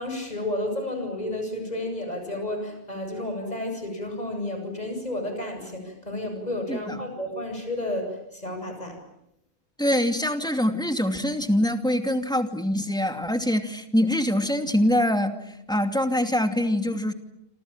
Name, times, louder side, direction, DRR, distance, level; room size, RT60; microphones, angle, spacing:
voice 1, 0.0-9.0, left 1 dB, 40° left, 5 dB, 8.3 m, -31 dB
voice 2, 9.8-17.1, left 1 dB, 5° left, 6 dB, 2.6 m, -24 dB
28.0 x 27.0 x 7.4 m, 0.82 s
omnidirectional pair, 1.1 m